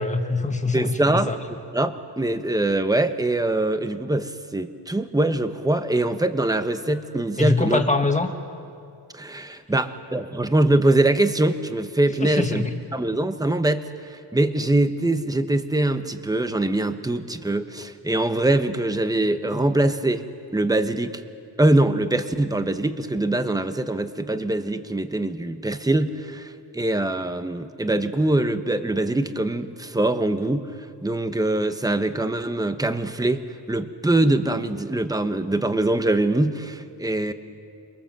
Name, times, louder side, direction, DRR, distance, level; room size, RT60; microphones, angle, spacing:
voice 1, 0.0-1.4 7.4-8.3 12.2-12.7, left 3 dB, 15° left, 5 dB, 1.8 m, -23 dB
voice 2, 0.7-1.3 1.7-7.8 9.1-12.7 12.9-20.2 20.5-21.2 21.6-33.4 33.7-37.3, right 2 dB, 10° right, 9 dB, 1.0 m, -23 dB
28.0 x 22.5 x 7.6 m, 2.4 s
wide cardioid pair, 125°, 43 cm